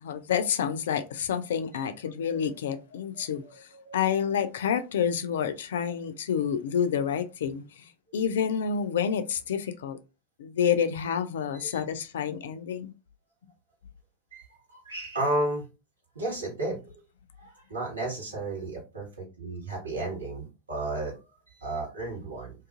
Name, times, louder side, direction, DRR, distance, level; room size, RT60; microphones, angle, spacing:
voice 1, 0.0-3.4 3.9-7.6 8.1-10.0 10.4-12.9, left 8 dB, 60° left, 0.3 m, -28 dB
voice 2, 2.3-2.8 3.1-4.1 8.1-8.2 11.5-11.8 14.3-15.7 16.1-17.0 17.4-21.1 21.5-22.5, right 2 dB, 75° right, 1.4 m, -34 dB
2.5 x 2.4 x 2.5 m
figure-of-eight pair, 90°, 0 cm